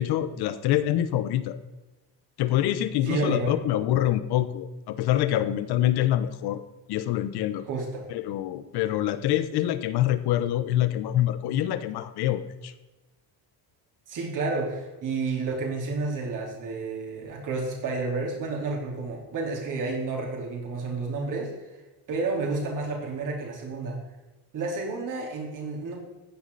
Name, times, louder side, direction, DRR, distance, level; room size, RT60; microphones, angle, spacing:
voice 1, 0.0-1.6 2.4-6.6 6.9-7.6 8.1-12.7, left 12 dB, 70° left, 12 dB, 1.1 m, -25 dB
voice 2, 3.0-3.6 7.7-8.0 14.1-21.5 22.1-24.0 24.5-26.0, right 3 dB, 50° right, -1 dB, 4.2 m, -30 dB
15.5 x 9.7 x 4.2 m, 1.1 s
cardioid pair, 155°, 41 cm